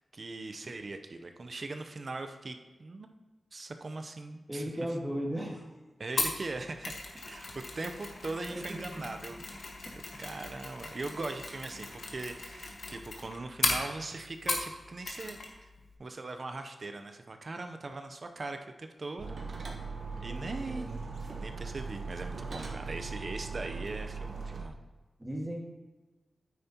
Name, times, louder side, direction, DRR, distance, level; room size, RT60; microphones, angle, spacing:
voice 1, 0.0-3.1 3.5-4.6 6.0-9.7 10.2-15.7 16.0-19.4 20.2-21.0 21.4-24.7, right 3 dB, 50° right, 6 dB, 0.7 m, -40 dB
voice 2, 4.5-5.7 6.2-6.3 8.5-9.1 9.9-10.0 20.3-21.0 25.2-25.6, equal, 15° right, 0 dB, 1.8 m, -37 dB
Mechanisms, 6.2-14.8 15.1-15.5 15.8-15.9, left 3 dB, 75° left, 1.5 m, -37 dB
sound 1, 19.2-24.6, right 4 dB, 75° right, 1.3 m, -39 dB
9.4 x 9.0 x 3.0 m, 1.2 s
wide cardioid pair, 80°, 0 cm